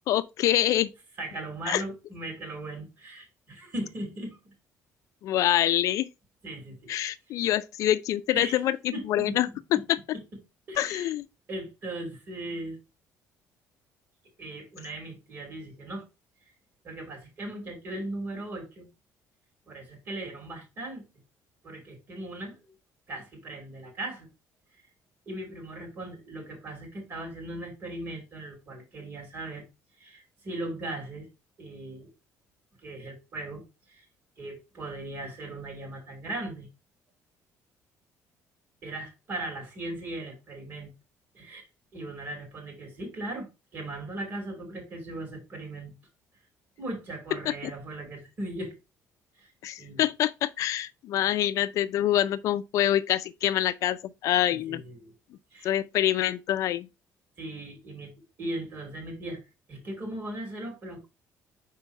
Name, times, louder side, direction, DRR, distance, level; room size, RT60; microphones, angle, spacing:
voice 1, 0.1-0.9 1.7-1.8 5.2-6.1 6.9-8.8 9.1-9.5 9.9-10.0 10.8-11.3 47.5-47.6 49.6-54.8 55.6-56.9, left 12 dB, 60° left, 0.4 m, -25 dB
voice 2, 1.2-4.5 6.4-6.9 7.3-7.4 8.3-8.6 8.9-9.8 10.1-10.2 10.7-11.1 11.5-12.8 14.4-16.0 16.8-18.9 19.7-21.1 21.6-22.7 23.1-24.3 25.3-29.6 30.0-31.3 31.6-32.1 32.8-34.1 34.4-36.7 38.8-40.9 41.3-41.6 41.9-45.9 46.8-48.7 49.3-49.5 49.8-50.1 54.5-55.1 55.5-55.8 57.4-58.1 58.4-59.4 59.7-61.1, right 1 dB, 35° right, 3.1 m, -38 dB
5.6 x 4.5 x 4.5 m
cardioid pair, 170°, 6 cm